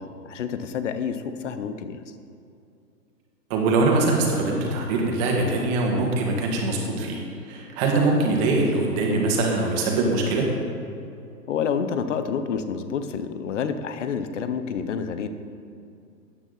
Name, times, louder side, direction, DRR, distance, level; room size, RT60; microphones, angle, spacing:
voice 1, 0.0-2.0 11.5-15.3, left 6 dB, 45° left, 10 dB, 0.9 m, -28 dB
voice 2, 3.5-7.2 7.5-10.5, right 3 dB, 25° right, -1 dB, 1.9 m, -22 dB
13.5 x 9.4 x 4.0 m, 2.6 s
hypercardioid pair, 145°, 50 cm